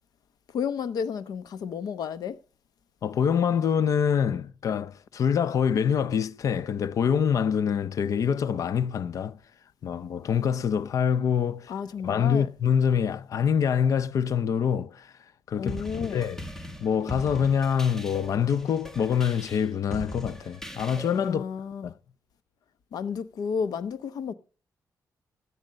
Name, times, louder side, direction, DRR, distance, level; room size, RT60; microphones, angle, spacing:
voice 1, 0.5-2.4 11.7-12.5 15.6-16.2 21.3-21.9 22.9-24.3, left 6 dB, 80° left, 0.9 m, -32 dB
voice 2, 3.0-9.4 9.8-11.7 12.0-15.1 15.5-16.4 16.8-21.5 21.8-21.9, left 7 dB, 55° left, 0.5 m, -25 dB
sound 1, 15.7-21.3, equal, 5° left, 1.1 m, -40 dB
14.5 x 8.1 x 6.4 m
wide cardioid pair, 140°, 7 cm